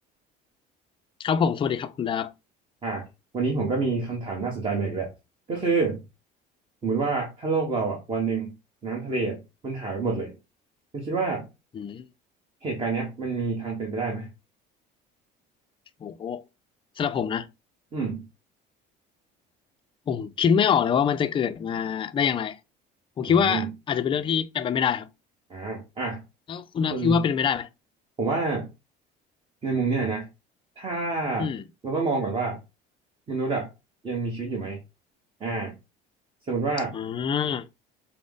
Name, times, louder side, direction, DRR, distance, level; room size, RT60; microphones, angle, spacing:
voice 1, 1.2-2.3 11.7-12.0 16.0-16.4 17.0-17.5 20.1-22.6 23.2-25.1 26.5-27.7 31.4-31.6 36.9-37.7, left 7 dB, 25° left, 0.4 m, -25 dB
voice 2, 3.3-5.1 5.5-6.0 6.8-8.5 8.8-10.3 10.9-11.5 12.6-14.3 17.9-18.3 23.3-23.7 25.5-26.2 26.9-27.2 28.2-28.7 29.6-30.3 30.8-31.5 31.8-32.6 33.3-33.7 34.0-34.8 35.4-35.7 36.5-37.0, right 4 dB, 25° right, 1.1 m, -28 dB
5.0 x 2.1 x 3.6 m
cardioid pair, 120°, 20 cm